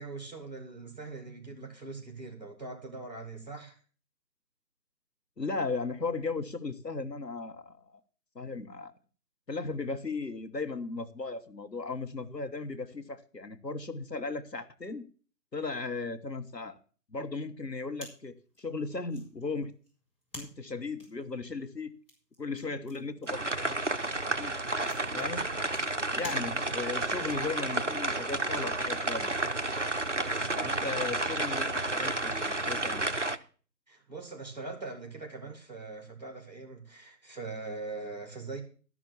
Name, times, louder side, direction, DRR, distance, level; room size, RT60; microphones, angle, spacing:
voice 1, 0.0-3.8 30.2-30.8 33.9-38.6, right 3 dB, 25° right, 3 dB, 2.0 m, -42 dB
voice 2, 5.4-8.0 8.3-8.9 9.5-15.0 15.5-16.8 17.1-19.7 20.3-21.9 22.4-23.8 24.4-24.5 25.1-25.5 26.1-29.3 30.6-33.1, left 3 dB, 85° left, 10 dB, 1.4 m, -36 dB
sound 1, 17.9-27.0, left 1 dB, 35° left, 4.7 m, -52 dB
sound 2, 23.3-33.4, right 2 dB, 50° right, 0.6 m, -31 dB
13.0 x 6.1 x 7.1 m, 0.39 s
figure-of-eight pair, 170°, 48 cm